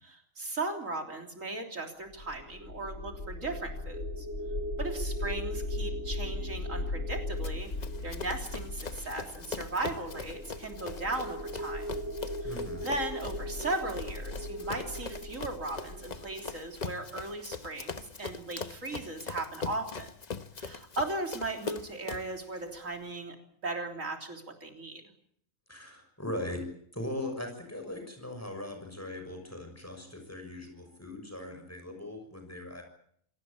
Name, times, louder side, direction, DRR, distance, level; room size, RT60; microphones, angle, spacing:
voice 1, 0.0-4.3 4.8-7.7 8.0-11.9 12.4-12.5 12.8-20.1 20.6-23.4 23.6-25.0, right 2 dB, 80° right, 3 dB, 3.8 m, -37 dB
sound 1, 2.1-17.2, left 1 dB, 70° left, 2.8 m, -38 dB
Run, 7.4-22.4, left 4 dB, 35° left, 1.1 m, -42 dB
voice 2, 12.4-12.9 25.7-26.7 26.9-32.8, left 1 dB, 10° left, 4 dB, 6.5 m, -39 dB
26.5 x 18.5 x 8.5 m, 0.68 s
omnidirectional pair, 1.3 m